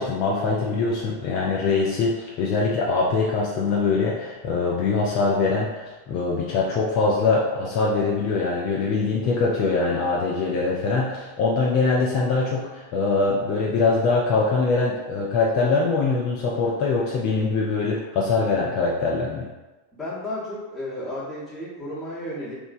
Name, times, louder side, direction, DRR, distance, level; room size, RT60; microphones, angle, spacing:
voice 1, 0.0-19.5, left 4 dB, 40° left, -3 dB, 0.4 m, -23 dB
voice 2, 19.9-22.5, left 1 dB, 10° left, -10 dB, 1.0 m, -33 dB
3.1 x 2.1 x 2.5 m, 1.1 s
figure-of-eight pair, 90°, 0 cm